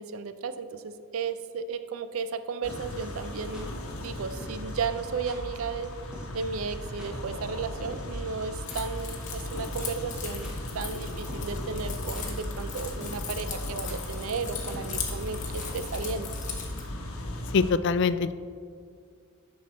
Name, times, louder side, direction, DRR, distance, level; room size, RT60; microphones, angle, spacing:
voice 1, 0.0-5.9 6.3-16.3, right 5 dB, 80° right, 11 dB, 0.5 m, -34 dB
sound 1, 2.6-17.7, left 1 dB, 85° left, 1.2 m, -37 dB
sound 2, 2.7-3.6 4.4-4.7 5.0-5.1 5.3-5.6 5.8-5.9 6.1-6.4 6.7-6.8 7.0-7.1 7.8-9.0 9.3-9.4 9.6-10.2 10.4-10.5 11.3-11.6 11.9-12.5 12.7-12.8 13.0-13.3 13.6-13.7 13.9-14.0 14.7-15.9 16.2-16.3, left 1 dB, 5° right, 2.0 m, -44 dB
Keys jangling, 8.7-16.8, left 7 dB, 35° left, 1.2 m, -39 dB
voice 2, 17.5-18.3, left 5 dB, 55° left, 14 dB, 0.4 m, -23 dB
11.5 x 6.3 x 4.2 m, 2.1 s
head